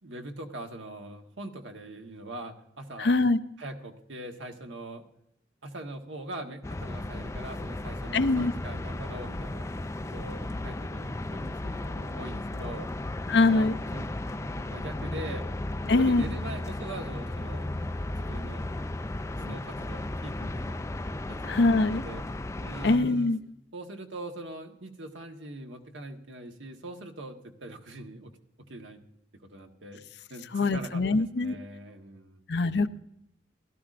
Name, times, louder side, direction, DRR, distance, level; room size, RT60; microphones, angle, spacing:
voice 1, 0.0-3.2 3.6-5.0 5.6-9.7 10.1-12.9 13.2-15.5 15.8-17.7 18.1-18.6 19.3-20.9 21.3-22.2 22.6-23.3 23.7-28.3 28.7-29.0 29.5-32.4, right 1 dB, 85° right, 4 dB, 1.4 m, -42 dB
voice 2, 3.0-3.4 8.1-8.5 13.3-13.7 15.9-16.2 21.5-22.0 22.8-23.4 30.5-31.6 32.5-32.9, left 3 dB, 65° left, 10 dB, 0.6 m, -23 dB
sound 1, 6.6-23.0, left 2 dB, 15° left, 0.4 m, -35 dB
17.0 x 13.0 x 2.5 m, 0.80 s
head